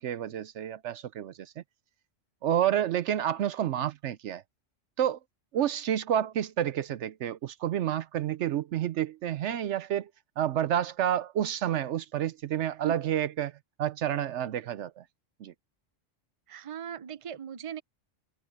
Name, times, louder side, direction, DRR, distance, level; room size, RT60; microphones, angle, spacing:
voice 1, 0.0-1.6 2.4-4.4 5.0-5.2 5.5-10.1 10.4-13.5 13.8-15.0 15.4-15.5, right 10 dB, 70° right, 0.9 m, -29 dB
voice 2, 16.5-17.8, right 9 dB, 30° right, 0.7 m, -38 dB
omnidirectional pair, 1.3 m